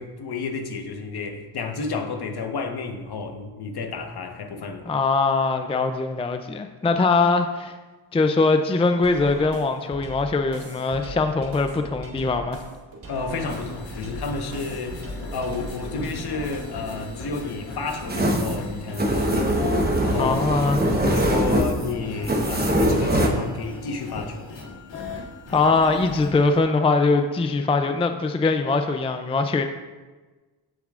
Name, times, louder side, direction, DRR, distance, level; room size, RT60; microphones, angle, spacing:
voice 1, 0.0-4.9 13.1-19.6 20.0-20.5 20.9-24.5, left 4 dB, 60° left, 5 dB, 1.3 m, -31 dB
voice 2, 4.9-7.7 8.1-12.6 20.2-20.8 25.5-29.6, left 3 dB, 15° left, 7 dB, 0.4 m, -22 dB
sound 1, 9.0-17.0, equal, 50° right, 2.1 m, -39 dB
sound 2, 13.3-26.6, left 3 dB, 80° left, 2.6 m, -38 dB
sound 3, 18.1-23.3, right 1 dB, 20° right, 1.2 m, -22 dB
14.5 x 7.0 x 2.5 m, 1.3 s
cardioid pair, 90°, 43 cm